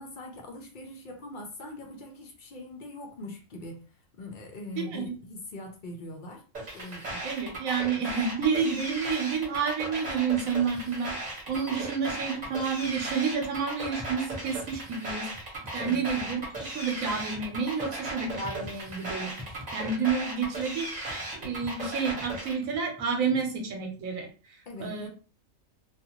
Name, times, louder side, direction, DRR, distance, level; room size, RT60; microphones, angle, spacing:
voice 1, 0.0-3.8 4.2-6.4 6.7-7.2 11.5-11.8 15.7-16.0 24.7-25.1, left 1 dB, 60° left, 2 dB, 0.5 m, -42 dB
sound 1, 6.5-22.5, right 2 dB, 35° right, 0.9 m, -36 dB
voice 2, 7.2-11.1 11.5-15.3 15.7-19.3 19.7-20.9 21.3-24.3 24.8-25.1, right 6 dB, 80° right, 2 dB, 1.1 m, -29 dB
sound 2, 10.0-10.4 10.7-11.8 12.0-12.5 12.8-16.7 17.0-19.1 19.4-20.2 20.5-23.4, left 1 dB, 10° right, 0.5 m, -47 dB
2.4 x 2.3 x 2.9 m, 0.36 s
omnidirectional pair, 1.4 m